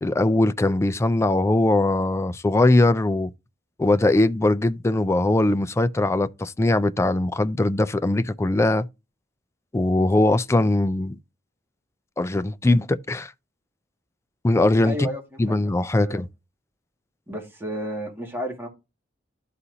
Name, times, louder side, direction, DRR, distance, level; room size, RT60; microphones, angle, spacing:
voice 1, 0.0-3.3 3.8-8.9 9.7-11.2 12.2-13.3 14.4-15.1 15.4-16.3, left 2 dB, 15° left, 0.3 m, -21 dB
voice 2, 14.8-15.6 16.0-16.2 17.3-18.7, equal, 10° right, 1.9 m, -32 dB
12.5 x 4.2 x 2.7 m
head